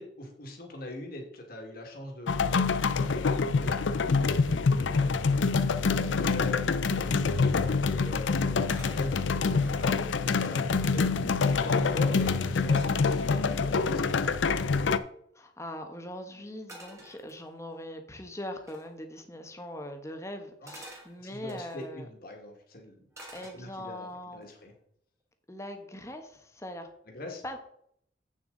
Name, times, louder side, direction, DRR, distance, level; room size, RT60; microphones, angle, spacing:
voice 1, 0.0-4.5 4.8-14.8 20.6-20.7 21.2-23.0 23.5-24.7 27.1-27.4, left 1 dB, 50° left, 2 dB, 2.1 m, -43 dB
sound 1, 2.3-15.0, left 4 dB, 80° left, 0.5 m, -26 dB
sound 2, 8.7-10.0 10.6-10.7 10.9-11.5 12.7-14.2 16.7-17.8 18.7-18.9 20.7-21.9 23.1-24.0 24.4-24.8, right 1 dB, 15° right, 2.0 m, -51 dB
voice 2, 15.3-22.1 23.3-24.5 25.5-26.9 27.4-27.6, left 1 dB, 15° left, 5 dB, 1.1 m, -41 dB
8.2 x 7.2 x 3.9 m, 0.67 s
head